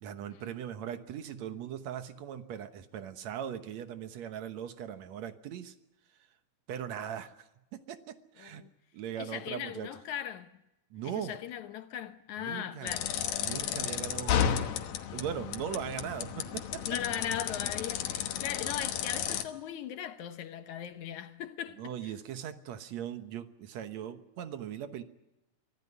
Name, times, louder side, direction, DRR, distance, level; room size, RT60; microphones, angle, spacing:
voice 1, 0.0-5.7 6.7-8.6 8.9-9.9 10.9-11.4 12.4-13.0 13.4-14.7 15.1-17.0 18.2-18.3 21.8-25.0, right 9 dB, 65° right, 2.0 m, -39 dB
voice 2, 8.4-8.7 9.2-10.5 11.0-13.1 16.9-21.9, left 10 dB, 70° left, 2.1 m, -38 dB
sound 1, 12.9-19.4, left 9 dB, 90° left, 3.0 m, -33 dB
24.0 x 15.0 x 9.8 m
omnidirectional pair, 4.0 m